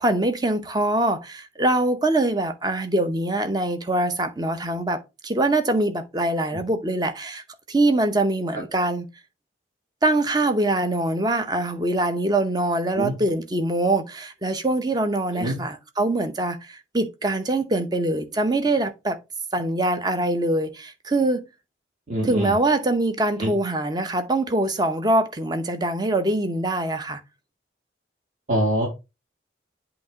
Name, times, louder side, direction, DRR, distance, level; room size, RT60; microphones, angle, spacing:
voice 1, 0.0-7.4 7.7-9.1 10.0-19.2 19.5-21.4 22.2-27.2, right 2 dB, 20° right, 0.7 m, -23 dB
voice 2, 22.1-22.5 23.4-23.5 28.5-28.9, right 1 dB, 40° right, 2.1 m, -24 dB
8.1 x 2.9 x 4.7 m
head